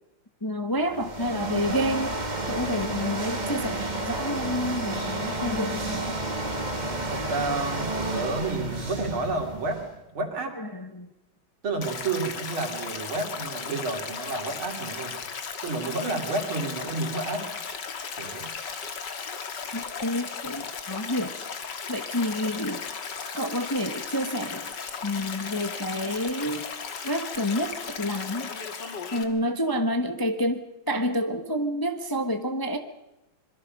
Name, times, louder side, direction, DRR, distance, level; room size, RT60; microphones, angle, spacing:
voice 1, 0.4-2.2 2.5-6.2 10.5-11.1 19.7-21.4 21.9-22.9 23.3-24.7 25.0-26.7 27.0-28.5 29.1-32.8, equal, 15° left, 7 dB, 0.8 m, -29 dB
sound 1, 0.8-10.0, right 2 dB, 20° right, 1.9 m, -31 dB
voice 2, 6.8-9.8 10.1-10.6 11.6-15.2 15.6-17.5 18.1-18.5, right 3 dB, 80° right, 4 dB, 3.6 m, -30 dB
Stream, 11.8-29.2, left 6 dB, 60° left, 2.3 m, -36 dB
25.0 x 22.5 x 5.4 m, 0.93 s
omnidirectional pair, 2.2 m